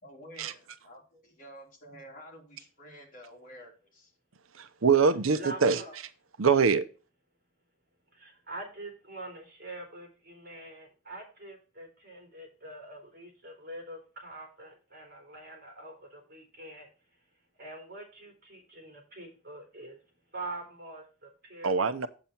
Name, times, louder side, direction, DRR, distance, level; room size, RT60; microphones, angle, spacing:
voice 1, 0.0-4.1, equal, 40° left, -1 dB, 3.4 m, -50 dB
voice 2, 4.6-5.8 6.4-6.8 21.6-22.1, right 5 dB, 85° right, 11 dB, 0.8 m, -23 dB
voice 3, 5.3-6.0 8.1-16.9 17.6-20.0 20.3-22.1, right 2 dB, 50° right, 3 dB, 3.5 m, -44 dB
8.1 x 7.3 x 4.5 m, 0.34 s
head